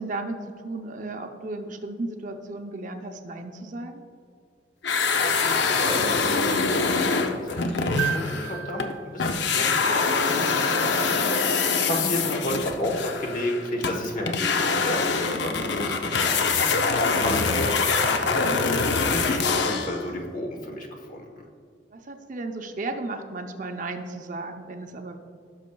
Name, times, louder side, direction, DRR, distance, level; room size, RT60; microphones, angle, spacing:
voice 1, 0.0-4.0 15.5-15.7 21.9-25.2, right 2 dB, 45° right, 5 dB, 0.6 m, -34 dB
sound 1, 4.8-8.9 9.2-20.0, left 4 dB, 70° left, 0.6 m, -24 dB
voice 2, 5.2-8.9 9.1-16.7 17.2-18.5 19.1-21.3, left 1 dB, 45° left, 2 dB, 1.1 m, -32 dB
sound 2, 8.0-10.3 12.3-12.4, right 10 dB, 85° right, 0.4 m, -34 dB
16.5 x 6.4 x 2.3 m, 2.2 s
head